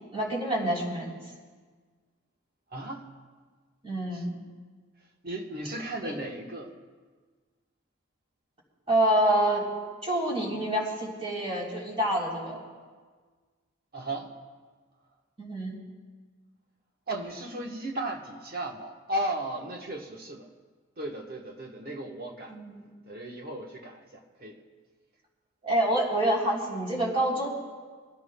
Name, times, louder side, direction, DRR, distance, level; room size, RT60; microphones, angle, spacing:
voice 1, 0.1-1.1 3.8-4.3 6.0-6.2 8.9-9.7 10.0-12.6 15.4-15.8 22.5-22.8 25.6-27.5, right 1 dB, 30° right, -5 dB, 3.5 m, -27 dB
voice 2, 2.7-3.1 4.1-4.2 5.2-6.7 13.9-14.3 17.1-20.5 21.0-22.6 23.0-24.6, right 1 dB, 45° right, 1 dB, 1.3 m, -35 dB
24.5 x 16.5 x 2.3 m, 1.5 s
head